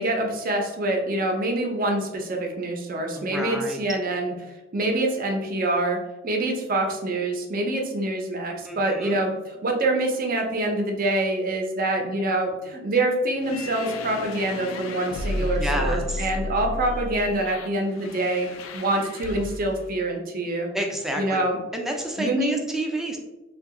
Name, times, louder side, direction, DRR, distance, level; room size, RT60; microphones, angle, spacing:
voice 1, 0.0-4.3 4.7-9.3 9.6-18.5 18.7-20.7 21.2-21.6 22.2-22.6, right 2 dB, 45° right, 2 dB, 0.6 m, -25 dB
voice 2, 3.2-3.8 8.7-9.2 15.4-16.3 20.7-21.4 21.7-23.2, right 1 dB, ahead, 1 dB, 0.4 m, -30 dB
sound 1, 13.4-19.8, left 2 dB, 85° left, 0.4 m, -32 dB
2.7 x 2.3 x 3.6 m, 1.0 s
head